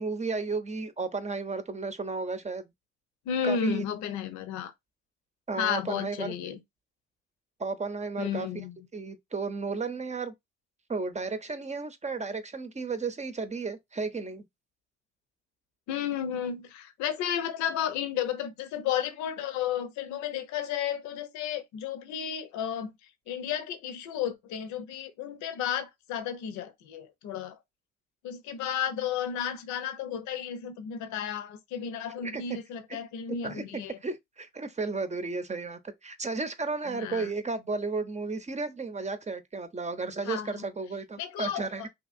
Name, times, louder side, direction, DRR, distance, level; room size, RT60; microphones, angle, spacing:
voice 1, 0.0-2.6 3.4-3.9 5.5-6.3 7.6-8.5 8.9-10.3 10.9-14.4 32.2-32.4 32.9-33.0 33.3-41.9, right 4 dB, 25° right, 0.7 m, -33 dB
voice 2, 3.3-4.7 5.6-6.6 8.2-8.8 15.9-22.9 23.3-27.6 28.2-34.0 36.9-37.3 40.2-40.5 41.2-41.9, left 8 dB, 80° left, 0.7 m, -33 dB
2.8 x 2.7 x 2.5 m
supercardioid pair, 60°, 29 cm